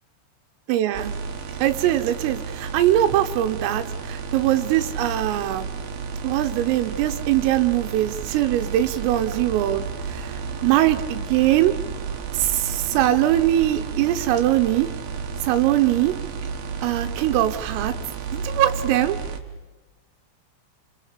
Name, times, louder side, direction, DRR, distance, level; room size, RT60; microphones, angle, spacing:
voice 1, 0.7-1.1 1.6-5.7 6.2-11.7 12.3-14.9 15.4-16.1 16.8-17.9 18.3-19.2, right 13 dB, 85° right, 7 dB, 3.7 m, -22 dB
sound 1, 0.9-19.4, right 5 dB, 60° right, 3.0 m, -32 dB
29.5 x 27.0 x 5.1 m, 1.2 s
omnidirectional pair, 5.8 m